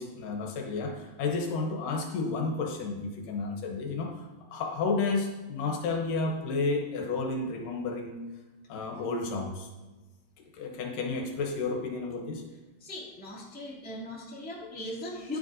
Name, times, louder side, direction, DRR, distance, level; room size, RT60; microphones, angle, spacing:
voice 1, 0.0-8.2 8.7-9.7 10.4-12.4, left 3 dB, 75° left, 2 dB, 2.6 m, -32 dB
voice 2, 12.8-15.4, left 1 dB, 5° left, -5 dB, 1.7 m, -39 dB
10.5 x 9.3 x 2.7 m, 1.2 s
omnidirectional pair, 3.9 m